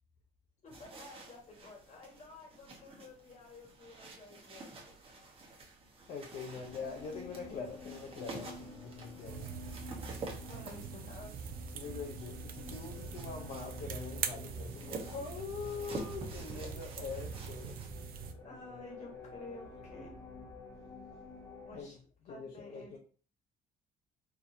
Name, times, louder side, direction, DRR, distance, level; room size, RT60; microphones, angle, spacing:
voice 1, 0.6-4.9 10.4-11.6 18.4-20.1 21.6-22.0 22.3-23.0, left 2 dB, 45° left, -1 dB, 1.6 m, -51 dB
sound 1, 0.7-17.9, right 2 dB, 35° right, 1.1 m, -49 dB
voice 2, 6.1-9.5 11.7-17.7 21.7-21.9 22.3-23.0, left 5 dB, 65° left, -1 dB, 0.7 m, -43 dB
sound 2, 6.4-21.8, left 2 dB, 20° left, 1.4 m, -51 dB
sound 3, 9.2-18.3, right 6 dB, 60° right, 0.5 m, -43 dB
4.4 x 2.7 x 2.7 m, 0.41 s
cardioid pair, 110°, 17 cm